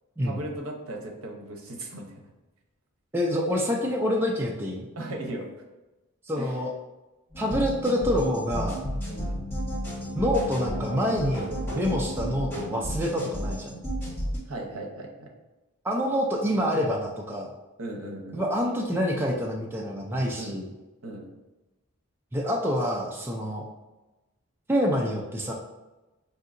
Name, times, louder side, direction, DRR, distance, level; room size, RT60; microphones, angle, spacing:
voice 1, 0.2-2.1 5.0-5.5 6.4-6.5 9.1-9.4 14.5-15.3 17.8-18.4 20.4-20.6 21.0-21.3, right 1 dB, 65° right, 1 dB, 0.8 m, -37 dB
voice 2, 3.1-4.9 6.3-6.7 7.4-8.8 10.2-13.7 15.8-17.5 18.3-20.7 22.3-23.6 24.7-25.5, equal, 10° right, -2 dB, 0.3 m, -27 dB
sound 1, 7.3-14.4, equal, 10° left, 1.3 m, -32 dB
5.2 x 2.7 x 2.5 m, 1.1 s
head